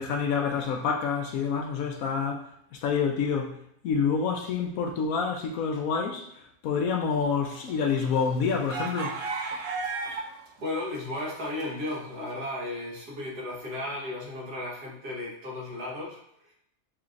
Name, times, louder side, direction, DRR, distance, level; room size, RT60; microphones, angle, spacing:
voice 1, 0.0-2.5 2.7-3.6 3.8-6.3 6.6-9.2, left 6 dB, 70° left, 1.0 m, -27 dB
sound 1, 7.3-10.5 10.8-12.1, right 4 dB, 65° right, 0.9 m, -35 dB
voice 2, 10.6-16.2, left 2 dB, 85° right, 1.7 m, -34 dB
5.9 x 2.9 x 2.5 m
omnidirectional pair, 1.6 m